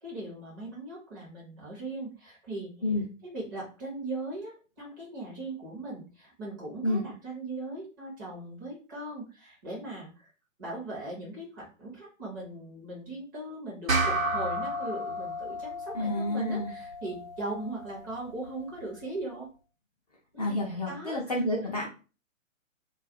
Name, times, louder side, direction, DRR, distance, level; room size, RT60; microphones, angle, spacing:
voice 1, 0.0-2.8 3.2-10.3 10.6-19.5 20.3-21.7, right 2 dB, 15° right, -5 dB, 0.6 m, -39 dB
sound 1, 13.9-18.7, right 1 dB, 90° right, 0.9 m, -33 dB
voice 2, 15.9-16.7 20.4-21.9, left 1 dB, 30° left, -4 dB, 0.4 m, -29 dB
2.3 x 2.2 x 2.5 m, 0.34 s
figure-of-eight pair, 125°, 40 cm